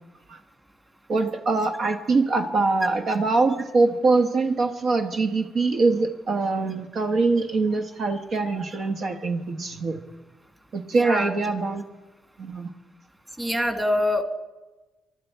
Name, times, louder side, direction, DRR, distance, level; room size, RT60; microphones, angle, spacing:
voice 1, 1.1-10.0 10.7-11.8 12.4-12.7, right 3 dB, 60° right, 5 dB, 1.3 m, -23 dB
voice 2, 10.9-11.3 13.4-14.2, left 1 dB, 15° right, 6 dB, 2.0 m, -25 dB
23.5 x 12.5 x 4.6 m, 1.1 s
cardioid pair, 90°, 0 cm